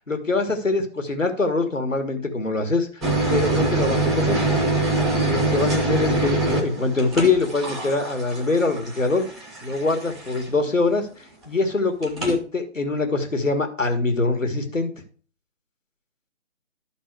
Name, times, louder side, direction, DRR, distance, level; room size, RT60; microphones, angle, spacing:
voice 1, 0.0-3.0 3.3-4.4 5.2-9.2 9.6-14.9, left 3 dB, 90° left, 6 dB, 1.9 m, -24 dB
sound 1, 3.0-10.7 12.0-12.4, right 2 dB, ahead, 0.4 m, -24 dB
12.0 x 4.1 x 4.7 m, 0.40 s
figure-of-eight pair, 145°, 37 cm